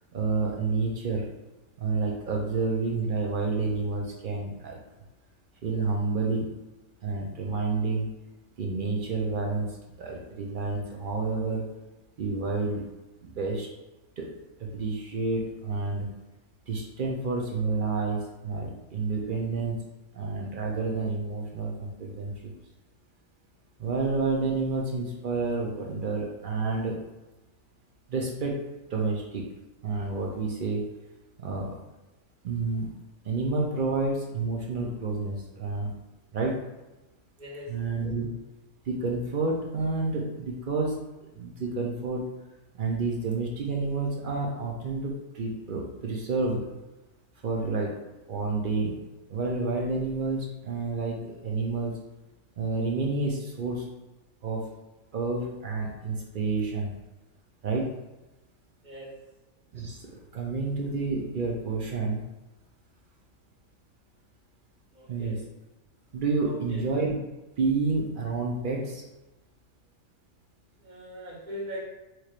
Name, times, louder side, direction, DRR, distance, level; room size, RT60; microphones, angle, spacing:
voice 1, 0.1-1.3 1.8-4.8 5.6-6.5 7.0-8.1 8.6-11.6 12.2-12.9 13.2-13.7 14.2-14.3 14.6-16.1 16.7-19.8 20.1-22.5 23.8-27.0 28.1-28.6 28.9-29.5 29.8-30.8 31.4-31.8 32.4-32.9 33.2-35.9 36.3-36.6 37.7-38.3 38.9-42.3 42.7-46.7 47.4-47.9 48.3-49.0 49.3-51.9 52.6-53.9 54.4-54.6 55.1-56.9 57.6-57.9 59.7-62.2 65.1-65.5 66.1-67.2 67.6-69.0, right 3 dB, 55° right, -1 dB, 0.6 m, -29 dB
voice 2, 37.4-37.7 58.8-59.2 64.9-65.4 66.4-66.8 70.8-71.8, equal, 40° right, -7 dB, 1.2 m, -40 dB
4.6 x 3.0 x 2.4 m, 1.0 s
omnidirectional pair, 1.3 m